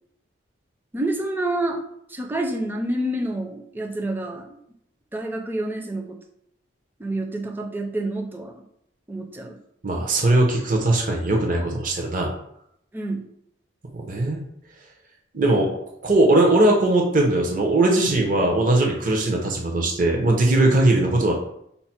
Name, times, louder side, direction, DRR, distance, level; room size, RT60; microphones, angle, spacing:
voice 1, 0.9-1.8 2.1-4.6 5.1-6.2 7.0-8.5 9.1-9.6 12.9-13.3, right 1 dB, 10° right, 2 dB, 0.4 m, -28 dB
voice 2, 9.8-12.3 13.9-14.4 15.3-15.7 16.0-21.3, right 2 dB, 45° right, 0 dB, 0.7 m, -20 dB
5.5 x 2.0 x 4.3 m, 0.73 s
head